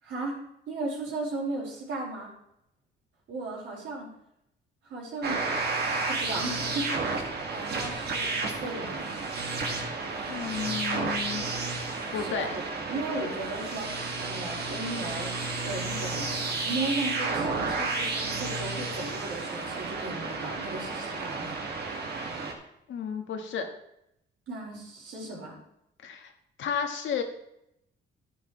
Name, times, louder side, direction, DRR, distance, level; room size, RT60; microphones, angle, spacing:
voice 1, 0.0-0.4 0.7-2.3 3.3-4.1 4.8-5.4 6.1-9.1 12.1-12.6 12.9-15.3 15.6-21.6 24.5-25.6, right 2 dB, 75° right, -3 dB, 4.7 m, -36 dB
sound 1, 5.2-22.5, right 3 dB, 55° right, 2.0 m, -32 dB
voice 2, 10.3-11.4 12.1-12.5 22.9-23.7 26.0-26.3 26.6-27.2, left 7 dB, 70° left, 4 dB, 1.5 m, -32 dB
11.5 x 9.8 x 3.2 m, 0.80 s
cardioid pair, 90°, 20 cm